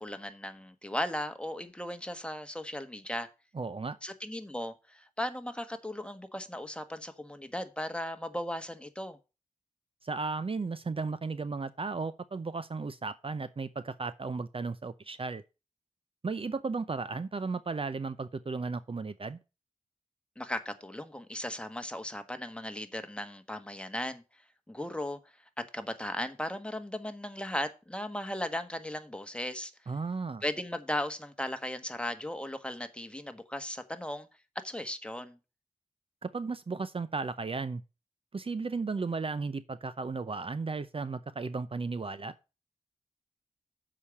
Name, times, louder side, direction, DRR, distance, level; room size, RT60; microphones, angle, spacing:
voice 1, 0.0-3.3 4.0-9.2 20.4-24.2 24.7-25.2 25.7-29.7 30.4-34.3 34.6-35.4, left 1 dB, 10° left, 1.4 m, -37 dB
voice 2, 3.5-4.0 10.0-15.4 16.2-19.4 29.9-30.4 36.2-37.8 38.3-42.3, right 4 dB, 45° right, 0.6 m, -35 dB
7.0 x 5.0 x 7.0 m
cardioid pair, 45°, 13 cm